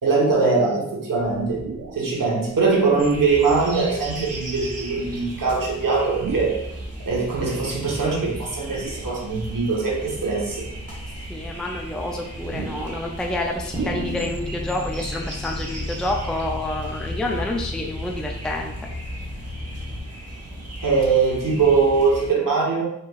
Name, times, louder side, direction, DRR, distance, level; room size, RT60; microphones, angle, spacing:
voice 1, 0.0-1.6 1.9-6.6 7.0-10.6 20.8-22.8, right 4 dB, 90° right, -3 dB, 1.1 m, -21 dB
sound 1, 1.2-2.1 2.8-2.9 3.9-4.3 5.0-6.8 7.9-9.4 10.0-10.1 10.7-14.6 14.9-15.0 15.2-15.7, right 4 dB, 65° right, 0.6 m, -37 dB
sound 2, 3.0-22.3, right 1 dB, 50° right, 1.0 m, -36 dB
voice 2, 11.3-18.7, left 1 dB, ahead, 1 dB, 0.4 m, -28 dB
sound 3, 13.7-20.0, left 2 dB, 15° right, 1.0 m, -34 dB
5.5 x 3.0 x 2.3 m, 0.81 s
wide cardioid pair, 90°, 32 cm